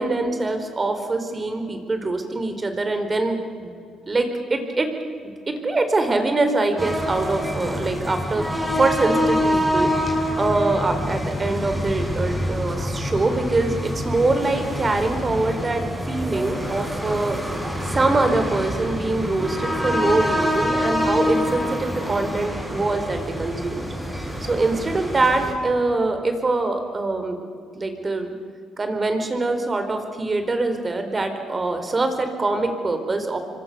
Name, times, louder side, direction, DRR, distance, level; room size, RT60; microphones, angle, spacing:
voice 1, 0.0-3.7 4.1-4.9 5.5-9.9 10.4-17.4 17.8-23.9 24.4-27.4 27.7-28.3 28.8-33.4, right 2 dB, 30° right, 7 dB, 4.4 m, -24 dB
sound 1, 6.8-25.5, equal, 5° right, 7.1 m, -26 dB
27.5 x 24.5 x 7.0 m, 2.3 s
cardioid pair, 90°, 0 cm